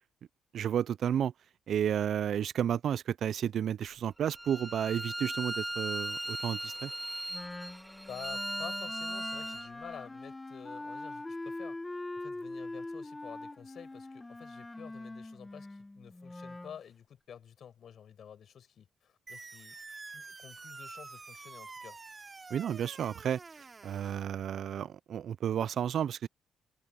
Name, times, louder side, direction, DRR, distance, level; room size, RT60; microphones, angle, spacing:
voice 1, 0.5-1.3 1.7-6.9 22.5-23.4 23.8-26.3, right 9 dB, 65° right, 0.4 m, -32 dB
Bowed string instrument, 4.3-9.7, right 1 dB, 5° right, 1.6 m, -38 dB
Wind instrument woodwind instrument, 7.3-16.8, left 2 dB, 15° left, 1.5 m, -43 dB
voice 2, 7.6-19.8 20.1-22.0, left 8 dB, 60° left, 6.1 m, -50 dB
sound 1, 19.3-24.3, right 4 dB, 30° right, 2.7 m, -48 dB
cardioid pair, 90°, 0 cm